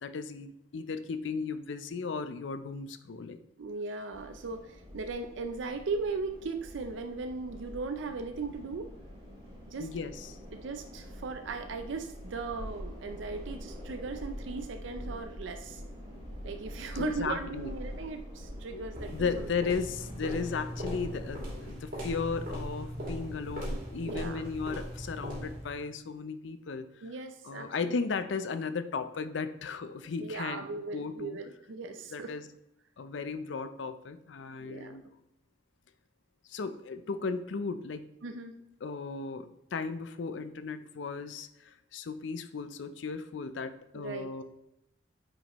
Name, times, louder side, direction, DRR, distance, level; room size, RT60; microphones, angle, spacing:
voice 1, 0.0-3.4 9.8-10.4 17.0-17.7 18.7-18.8 19.1-27.1 27.4-30.7 30.9-31.4 32.1-32.4 33.0-35.0 36.5-38.0 38.8-44.4, left 5 dB, 70° left, 11 dB, 0.5 m, -35 dB
voice 2, 3.6-8.9 9.7-9.9 10.5-15.8 16.4-19.5 24.0-24.4 27.0-28.0 30.2-32.3 34.6-35.0 38.2-38.5 43.9-44.3, right 4 dB, 75° right, 7 dB, 0.5 m, -38 dB
sound 1, 4.1-21.7, equal, 25° right, 1.9 m, -45 dB
sound 2, 18.9-25.8, equal, 45° right, 2.5 m, -39 dB
8.8 x 5.1 x 3.0 m, 0.86 s
head